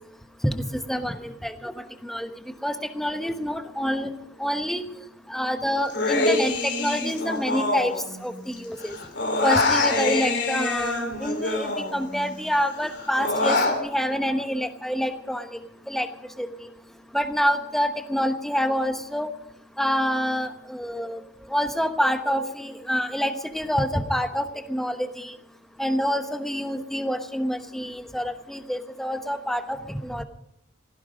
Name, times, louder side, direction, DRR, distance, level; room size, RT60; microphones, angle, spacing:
voice 1, 0.4-2.3 2.6-4.1 4.4-4.8 5.3-7.9 8.2-8.9 9.4-15.6 15.9-16.1 16.4-16.5 17.1-19.3 19.8-21.2 21.5-25.3 25.8-30.2, equal, ahead, 7 dB, 1.0 m, -27 dB
Human voice, 5.9-8.5 8.8-12.3 12.7-13.8, left 2 dB, 55° left, 3.1 m, -25 dB
17.5 x 15.0 x 5.1 m, 0.80 s
head